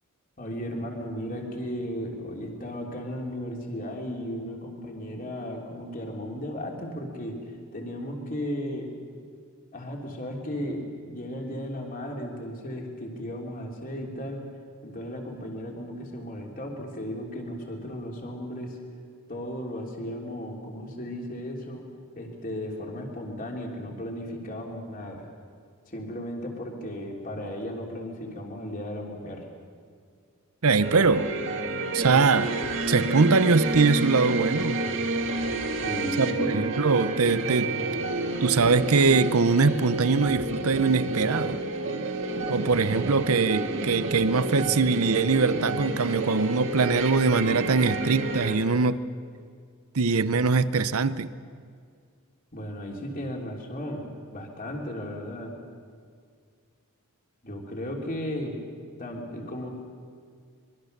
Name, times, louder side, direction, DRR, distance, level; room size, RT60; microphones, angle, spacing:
voice 1, 0.4-7.4 7.7-8.9 9.7-14.4 14.8-18.8 19.3-21.9 22.1-25.3 25.9-29.5 35.7-36.7 52.5-54.1 54.3-55.5 57.4-58.6 59.0-59.7, equal, 40° left, 0 dB, 3.3 m, -35 dB
voice 2, 30.6-31.3 31.9-32.5 32.9-34.8 36.2-37.7 38.4-41.6 42.5-49.0 49.9-51.3, right 4 dB, 80° right, 14 dB, 0.8 m, -22 dB
sound 1, 30.8-48.6, right 2 dB, 60° right, 1.9 m, -30 dB
25.0 x 23.0 x 6.7 m, 2.1 s
head